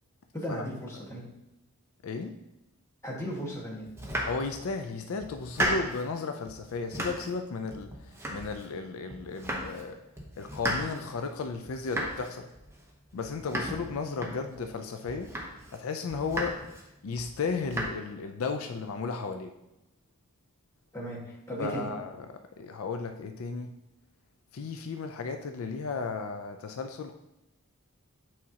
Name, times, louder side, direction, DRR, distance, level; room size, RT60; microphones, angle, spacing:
voice 1, 0.3-1.2 3.0-3.9 20.9-21.9, equal, 15° left, -4 dB, 1.5 m, -36 dB
Domestic sounds home sounds, 3.9-4.8 5.2-6.1 6.5-7.4 7.7-8.8 9.1-9.9 10.1-14.7 15.1-15.8 16.1-16.8 17.2-17.8, right 1 dB, 10° right, 0.8 m, -35 dB
voice 2, 4.2-10.0 10.4-12.5 13.1-15.3 15.7-16.5 17.0-19.5 21.6-22.3 22.6-23.7 24.5-27.1, left 4 dB, 70° left, 6 dB, 0.4 m, -34 dB
8.5 x 4.2 x 2.8 m, 0.92 s
head